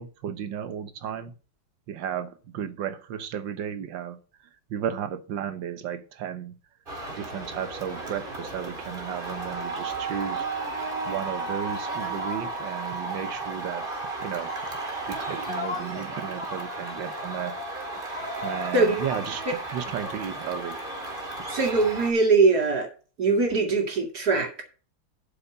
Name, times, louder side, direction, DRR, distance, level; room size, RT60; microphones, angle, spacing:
voice 1, 0.0-1.3 1.9-4.2 4.7-6.5 7.1-10.4 11.1-13.8 14.2-14.5 15.1-17.6 18.4-20.8, right 9 dB, 80° right, 1.7 m, -34 dB
sound 1, 6.9-22.1, right 2 dB, 30° right, 2.0 m, -34 dB
voice 2, 21.5-22.9 23.2-24.6, right 3 dB, 55° right, 2.7 m, -22 dB
8.2 x 5.8 x 6.7 m
omnidirectional pair, 2.0 m